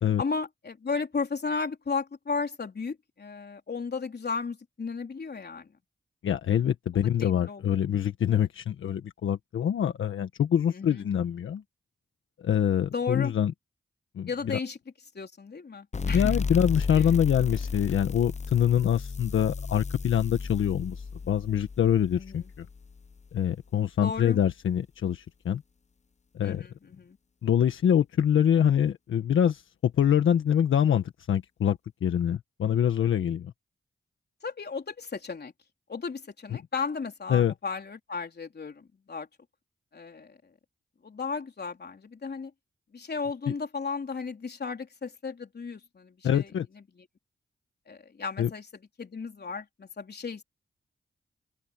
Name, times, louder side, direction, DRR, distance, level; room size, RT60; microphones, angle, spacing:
voice 1, 0.2-5.7 7.2-7.6 10.7-11.1 12.9-13.3 14.3-14.8 15.1-16.3 16.9-17.1 22.2-22.5 24.0-24.4 26.4-27.2 34.4-35.5 35.9-39.3 39.9-40.4 41.0-42.5 42.9-47.1 47.9-48.7 49.0-50.4, left 4 dB, 55° left, 3.7 m, -34 dB
voice 2, 6.2-11.6 12.4-13.5 14.1-14.6 16.1-22.6 23.3-25.6 26.3-26.6 27.4-33.5 37.3-37.5 43.5-43.6 46.2-46.7 48.4-48.5, left 9 dB, 85° left, 1.4 m, -25 dB
sound 1, 15.9-23.2, left 5 dB, 35° left, 0.7 m, -33 dB
open air
cardioid pair, 45°, 20 cm